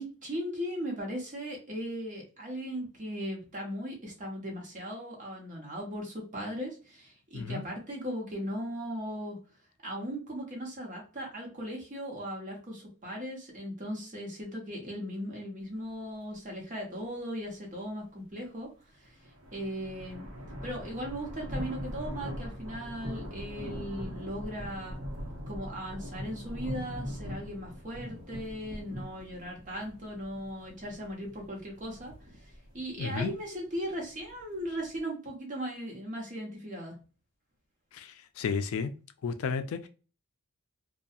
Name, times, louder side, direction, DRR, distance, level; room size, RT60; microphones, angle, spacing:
voice 1, 0.0-9.4 9.8-18.7 19.0-19.2 19.5-20.3 20.6-25.0 25.5-36.9, equal, 35° right, 0.9 m, -38 dB
sound 1, 19.0-35.0, equal, 80° right, 1.0 m, -41 dB
voice 2, 33.0-33.3 37.9-38.9 39.2-39.9, left 5 dB, 65° left, 0.3 m, -32 dB
2.7 x 2.3 x 2.3 m
head